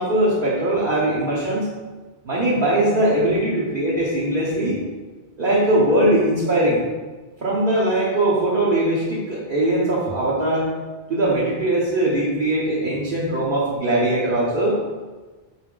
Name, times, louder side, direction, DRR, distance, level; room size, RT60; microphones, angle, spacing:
voice 1, 0.0-1.7 2.2-4.8 5.4-6.8 7.4-10.7 11.1-14.8, right 1 dB, 55° right, -6 dB, 1.1 m, -20 dB
6.4 x 4.2 x 3.8 m, 1.3 s
omnidirectional pair, 1.1 m